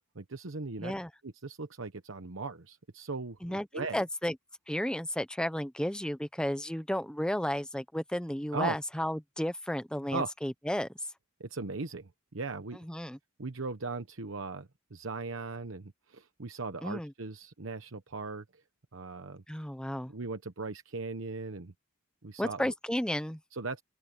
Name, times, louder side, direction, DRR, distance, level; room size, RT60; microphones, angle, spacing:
voice 1, 0.1-0.9 1.2-4.0 8.5-8.8 10.1-10.3 11.4-12.8 13.4-18.6 18.9-19.4 20.1-21.7 22.2-22.7 23.5-23.8, right 3 dB, 65° right, 1.0 m, -38 dB
voice 2, 0.8-1.1 3.4-4.4 4.7-10.9 12.8-13.2 16.8-17.1 19.5-20.1 22.4-23.4, equal, 5° left, 0.8 m, -33 dB
open air
head